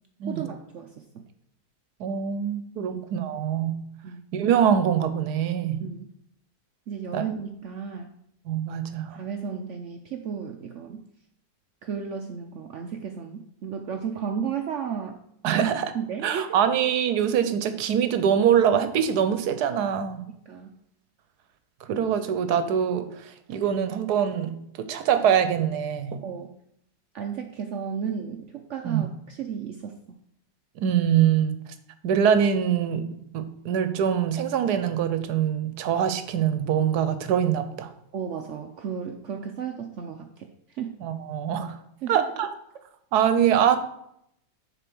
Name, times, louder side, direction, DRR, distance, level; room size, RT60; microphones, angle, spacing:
voice 1, 0.3-1.2 2.8-3.0 4.0-4.2 5.8-6.1 6.9-8.1 9.1-11.0 11.8-15.2 15.5-15.6 15.9-16.6 20.5-20.7 26.2-26.5 27.1-30.2 38.1-40.9 42.0-42.2, right 7 dB, 65° right, 5 dB, 0.7 m, -34 dB
voice 2, 2.0-3.7 4.3-5.8 7.1-7.2 8.5-9.1 15.4-15.9 16.2-20.2 21.9-26.2 28.8-29.1 30.8-31.6 32.0-33.1 33.3-37.9 41.0-41.8 42.1-42.5 43.1-43.8, right 8 dB, 80° right, 10 dB, 1.2 m, -24 dB
6.8 x 4.1 x 6.1 m, 0.75 s
omnidirectional pair, 1.7 m